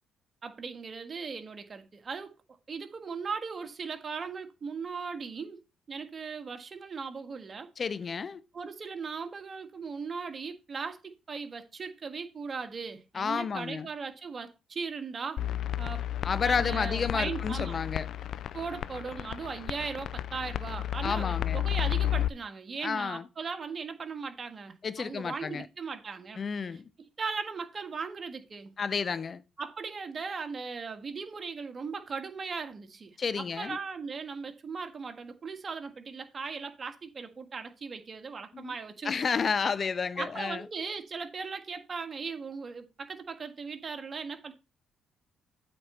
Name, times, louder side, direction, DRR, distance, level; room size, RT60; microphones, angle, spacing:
voice 1, 0.4-2.4 2.7-5.6 5.9-7.7 8.5-15.4 15.8-16.0 16.4-17.8 18.5-26.4 27.0-28.7 29.6-39.1 40.2-44.5, right 5 dB, 45° right, 1.7 m, -38 dB
voice 2, 7.8-8.4 13.1-13.9 16.2-18.1 21.0-21.6 22.8-23.3 24.8-25.7 26.4-26.9 28.8-29.4 33.2-33.8 38.5-38.7 39.0-40.6, left 5 dB, 45° left, 0.8 m, -31 dB
sound 1, 15.4-22.3, left 11 dB, 65° left, 0.4 m, -32 dB
8.5 x 4.4 x 6.7 m
hypercardioid pair, 50°, 0 cm